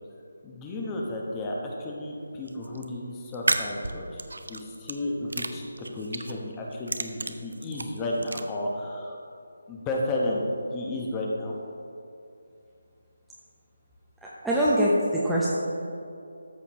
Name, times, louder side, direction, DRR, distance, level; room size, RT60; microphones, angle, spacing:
voice 1, 0.4-4.2 4.5-5.6 5.9-9.1 9.7-10.4 10.7-11.6, left 1 dB, 15° left, -2 dB, 1.1 m, -32 dB
sound 1, 2.5-2.8 3.3-5.0 5.3-6.4 6.7-8.4, right 2 dB, 70° right, 0.6 m, -31 dB
voice 2, 14.4-15.5, equal, ahead, -9 dB, 0.8 m, -23 dB
13.5 x 7.0 x 3.1 m, 2.6 s
figure-of-eight pair, 155°, 0 cm